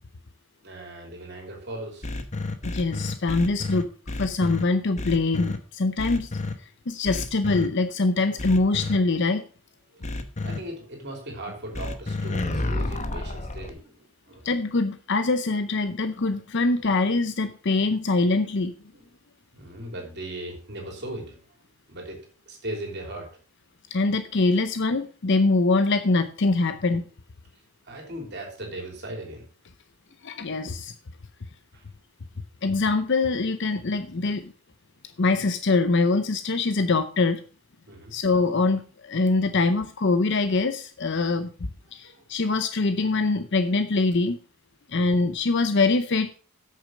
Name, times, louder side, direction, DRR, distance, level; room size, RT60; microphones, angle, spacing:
voice 1, 0.6-2.1 10.4-14.4 18.9-19.0 19.5-21.4 21.9-23.4 27.9-29.5 31.7-31.9 37.9-38.2 42.0-42.2 44.9-45.2, right 1 dB, 50° right, 2 dB, 3.3 m, -38 dB
sound 1, 2.0-4.6 5.0-5.6 6.0-6.5 7.0-7.7 8.4-9.0 10.0-10.6 11.7-13.7, left 2 dB, 30° left, 1.0 m, -30 dB
voice 2, 2.6-3.9 4.2-6.3 6.9-9.4 14.4-18.7 23.9-27.0 30.2-30.9 32.6-34.5 35.2-37.4 38.1-44.4 44.9-46.3, left 3 dB, 55° left, 10 dB, 0.7 m, -23 dB
8.6 x 6.8 x 6.1 m, 0.38 s
head